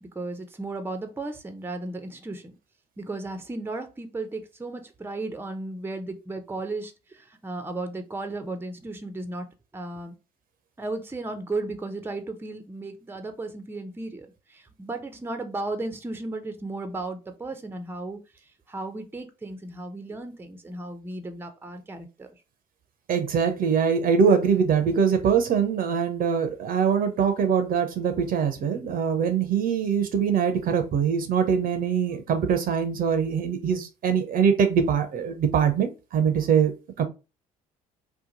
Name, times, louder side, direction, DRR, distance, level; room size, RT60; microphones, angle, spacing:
voice 1, 0.0-2.5 3.0-9.5 9.7-10.1 10.8-18.2 18.7-22.3, right 2 dB, 10° right, 0.6 m, -35 dB
voice 2, 23.1-36.7 37.0-37.1, right 7 dB, 50° right, 0.6 m, -23 dB
2.9 x 2.2 x 3.8 m
hypercardioid pair, 55°, 19 cm